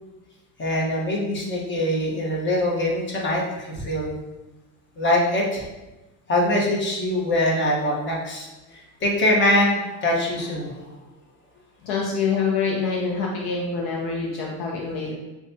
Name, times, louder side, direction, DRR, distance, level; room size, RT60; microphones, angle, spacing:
voice 1, 0.6-4.2 5.0-5.6 6.3-10.8, left 1 dB, 25° left, -3 dB, 1.2 m, -23 dB
voice 2, 11.8-15.1, left 5 dB, 60° left, -1 dB, 0.7 m, -26 dB
6.1 x 2.4 x 2.7 m, 1.1 s
supercardioid pair, 110°, 43 cm